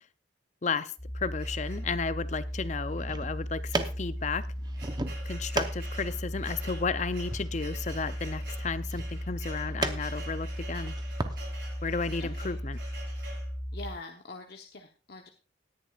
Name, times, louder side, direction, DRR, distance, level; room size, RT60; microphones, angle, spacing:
voice 1, 0.6-4.5 5.3-10.9 11.8-12.8, left 4 dB, 40° left, 0.5 m, -33 dB
sound 1, 1.0-13.9, equal, 5° right, 3.5 m, -36 dB
sound 2, 1.4-2.2 3.0-3.1 3.4-3.5 4.2-13.5, right 3 dB, 60° right, 5.7 m, -48 dB
sound 3, 2.8-11.4, right 2 dB, 20° right, 0.8 m, -38 dB
voice 2, 12.2-12.6 13.7-15.3, left 2 dB, 55° left, 1.0 m, -44 dB
18.5 x 10.5 x 2.4 m
head